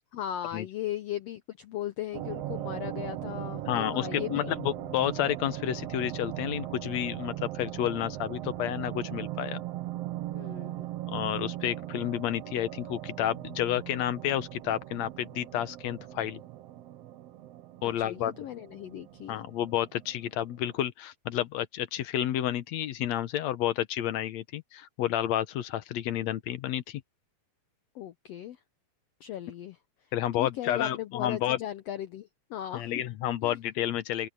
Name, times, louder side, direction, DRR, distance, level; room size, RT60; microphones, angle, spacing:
voice 1, 0.1-4.5 10.3-10.9 18.0-19.4 27.9-28.6 29.2-29.8 30.4-33.0 33.4-33.6, left 12 dB, 90° left, 1.4 m, -37 dB
sound 1, 2.1-20.8, right 14 dB, 75° right, 1.4 m, -39 dB
voice 2, 3.7-9.6 11.1-16.4 17.8-18.4 19.3-27.0 30.1-31.6 32.7-34.3, left 11 dB, 65° left, 1.9 m, -30 dB
omnidirectional pair, 3.9 m